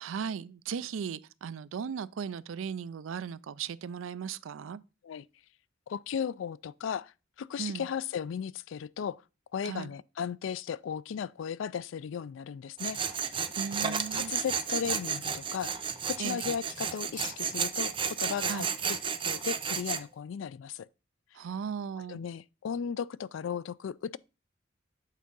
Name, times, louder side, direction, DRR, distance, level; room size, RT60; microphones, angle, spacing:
voice 1, 0.0-4.8 7.6-7.9 9.6-9.9 13.6-14.3 16.2-16.4 18.5-18.7 21.3-22.2, right 6 dB, 80° right, 0.4 m, -37 dB
voice 2, 5.9-9.2 9.5-13.3 13.8-19.0 19.2-20.9 22.1-24.2, left 7 dB, 70° left, 0.3 m, -36 dB
Tools, 12.8-20.0, right 7 dB, 25° right, 0.5 m, -32 dB
8.3 x 3.7 x 5.3 m
head